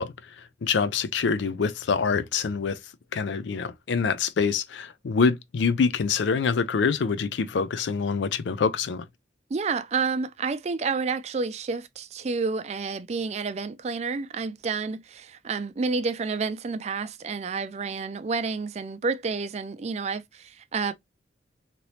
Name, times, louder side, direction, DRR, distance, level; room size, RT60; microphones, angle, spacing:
voice 1, 0.0-2.8 3.1-9.1, left 5 dB, 75° left, 0.4 m, -25 dB
voice 2, 9.5-20.9, right 4 dB, 35° right, 0.4 m, -29 dB
2.9 x 2.7 x 3.1 m
head